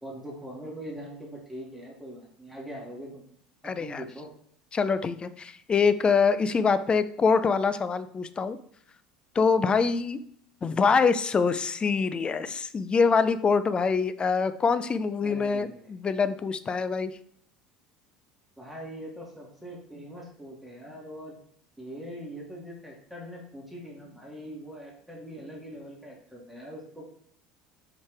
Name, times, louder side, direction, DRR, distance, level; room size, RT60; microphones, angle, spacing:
voice 1, 0.0-3.2 3.6-4.3 15.2-15.9 18.6-21.4 21.8-27.1, equal, 5° right, -4 dB, 2.1 m, -42 dB
voice 2, 3.6-4.0 4.7-8.6 9.3-10.2 10.6-17.2, left 5 dB, 25° left, 13 dB, 0.5 m, -25 dB
5.3 x 5.2 x 3.4 m, 0.64 s
hypercardioid pair, 75°, 4 cm